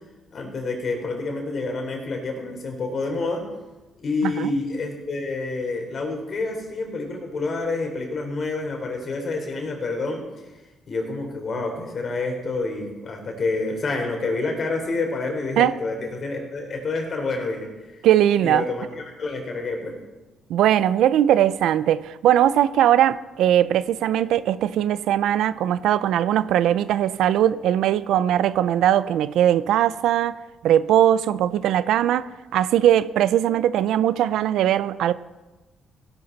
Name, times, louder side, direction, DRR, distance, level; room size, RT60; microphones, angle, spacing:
voice 1, 0.3-3.4 4.0-10.2 10.9-17.7 18.4-19.9, left 3 dB, 50° left, 4.0 m, -28 dB
voice 2, 18.0-18.6 20.5-30.4 30.6-32.3 32.5-35.1, right 11 dB, 85° right, 0.5 m, -20 dB
17.0 x 11.5 x 4.1 m
cardioid pair, 90°, 0 cm